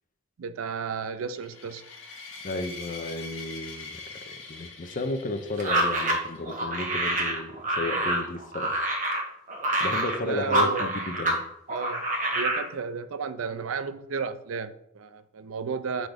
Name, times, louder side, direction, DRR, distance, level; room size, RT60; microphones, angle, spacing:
voice 1, 0.4-1.9 10.2-10.9 11.7-12.0 12.3-16.1, right 5 dB, 75° right, 0.5 m, -33 dB
sound 1, 1.3-6.6, left 4 dB, 65° left, 1.4 m, -43 dB
voice 2, 2.4-3.9 4.5-8.7 9.8-11.4, left 2 dB, 40° left, 0.7 m, -33 dB
sound 2, 5.6-11.4 11.7-12.6, right 1 dB, 40° right, 1.4 m, -27 dB
6.1 x 3.9 x 5.0 m
head